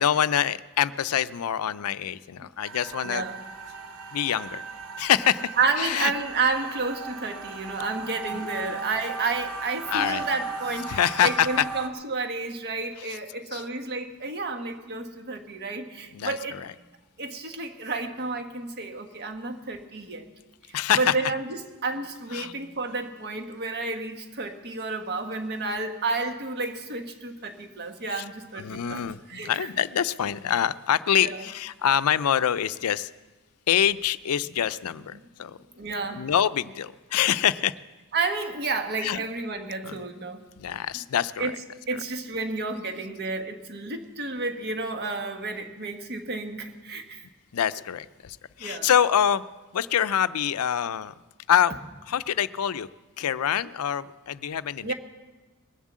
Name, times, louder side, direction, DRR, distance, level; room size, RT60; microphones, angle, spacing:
voice 1, 0.0-3.3 4.1-4.6 5.0-6.1 8.3-8.8 9.9-10.3 10.7-11.7 13.0-13.2 13.5-13.6 16.1-16.7 20.7-21.3 22.3-22.5 28.1-28.3 28.5-33.1 33.7-35.1 35.4-35.6 36.1-37.7 39.0-39.2 39.8-40.0 40.6-41.6 41.9-42.0 47.5-49.4 49.7-51.1 51.5-51.7 52.1-52.9 53.2-54.9, left 9 dB, 75° left, 16 dB, 0.4 m, -25 dB
sound 1, 2.7-11.9, right 4 dB, 70° right, 1.1 m, -37 dB
voice 2, 3.0-3.4 5.6-16.6 17.2-20.3 20.9-29.0 29.3-29.7 31.2-31.4 35.1-35.2 35.8-36.3 38.1-40.4 41.4-41.6 41.9-47.3 48.6-48.9 54.8-54.9, right 3 dB, 50° right, 5 dB, 1.4 m, -31 dB
20.5 x 7.4 x 7.3 m, 1.2 s
head